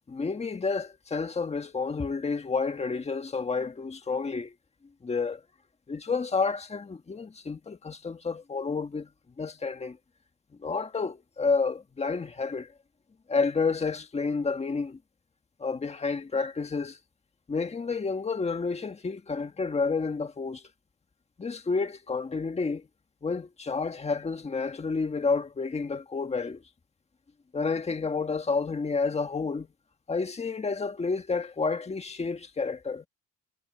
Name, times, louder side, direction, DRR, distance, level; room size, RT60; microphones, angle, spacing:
voice 1, 0.1-4.5 5.0-5.4 5.9-9.1 9.4-10.0 10.6-12.7 13.3-15.0 15.6-17.0 17.5-20.6 21.4-22.8 23.2-26.6 27.5-29.7 30.1-33.1, left 4 dB, 20° left, 1.7 m, -30 dB
cardioid pair, 135°, 35 cm